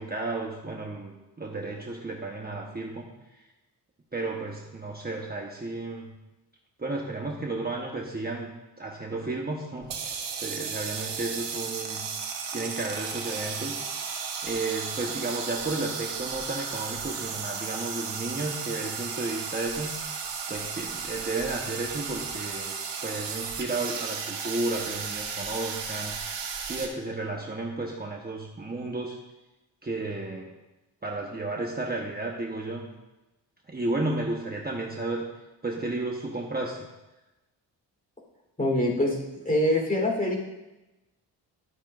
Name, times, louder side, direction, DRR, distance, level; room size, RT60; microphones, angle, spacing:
voice 1, 0.0-3.1 4.1-6.1 6.8-8.5 8.8-9.9 10.4-12.1 12.5-13.8 14.4-20.2 20.5-22.7 23.0-26.2 26.6-29.2 29.8-30.5 31.0-32.8 33.7-35.3 35.6-36.8, right 2 dB, 20° right, -1 dB, 1.1 m, -33 dB
sound 1, 9.8-26.9, right 6 dB, 90° right, 1.4 m, -34 dB
voice 2, 38.6-39.2 39.5-40.4, left 1 dB, 20° left, -1 dB, 3.6 m, -24 dB
12.0 x 8.8 x 2.5 m, 1.0 s
cardioid pair, 75°, 42 cm